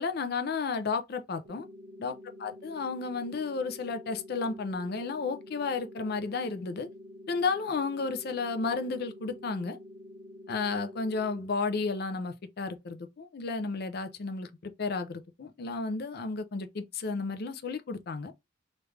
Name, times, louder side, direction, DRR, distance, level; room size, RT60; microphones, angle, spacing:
voice 1, 0.0-1.7 2.0-6.9 7.3-9.8 10.5-18.3, left 4 dB, 55° left, 0.5 m, -33 dB
sound 1, 1.5-11.5, left 1 dB, 75° right, 0.9 m, -48 dB
3.2 x 2.5 x 3.2 m
head